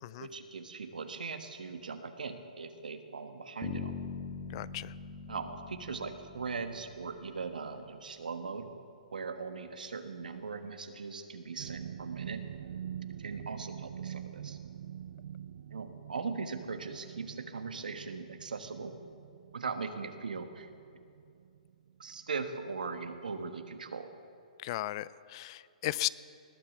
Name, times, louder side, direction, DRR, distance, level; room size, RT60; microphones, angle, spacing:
voice 1, 0.2-3.9 5.3-8.7 9.1-12.4 13.2-14.6 15.7-19.0 19.5-20.7 22.0-24.1, right 4 dB, 90° right, 8 dB, 1.3 m, -39 dB
Bass guitar, 3.6-7.5, left 5 dB, 25° left, 1.7 m, -43 dB
voice 2, 4.5-4.9 24.6-26.1, left 16 dB, 40° left, 19 dB, 0.4 m, -36 dB
sound 1, 11.6-22.3 22.6-22.9 23.3-23.4, right 9 dB, 70° right, 0.4 m, -45 dB
19.5 x 8.8 x 7.1 m, 2.6 s
hypercardioid pair, 145°, 4 cm